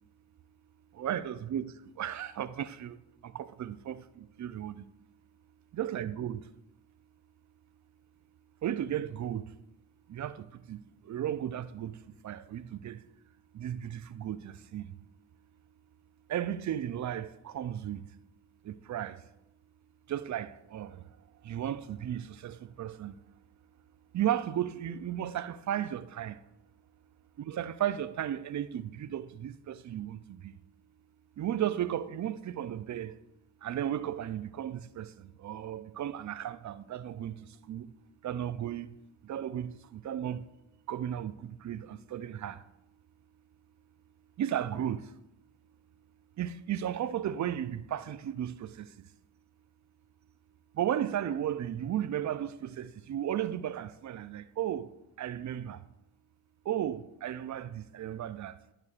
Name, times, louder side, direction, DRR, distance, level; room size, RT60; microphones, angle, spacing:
voice 1, 0.9-4.9 5.7-6.5 8.6-9.6 10.1-13.1 13.5-15.0 16.3-18.2 18.6-19.3 20.1-23.3 24.1-26.4 27.4-30.6 31.4-33.2 33.6-37.9 38.2-39.0 39.2-40.5 40.9-42.7 44.4-45.1 46.4-49.1 50.7-54.9 55.2-55.9 56.6-58.6, right 10 dB, 45° right, 0.5 m, -35 dB
11.0 x 6.2 x 2.4 m
supercardioid pair, 45°, 42 cm